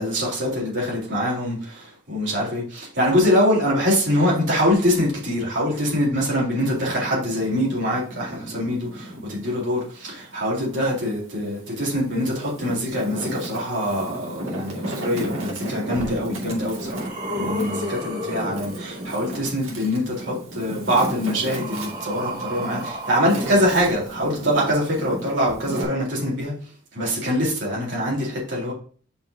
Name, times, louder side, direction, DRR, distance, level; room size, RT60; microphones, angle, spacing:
voice 1, 0.0-17.1 17.3-26.5 26.9-28.7, equal, 60° right, 3.9 m, -24 dB
Wind, 6.6-9.5 10.0-11.3 11.9-25.8, right 1 dB, 80° right, 2.3 m, -34 dB
sound 1, 16.0-16.1 16.6-19.4 20.6-24.5 25.4-25.5, equal, 40° right, 2.4 m, -33 dB
11.0 x 4.5 x 2.8 m
head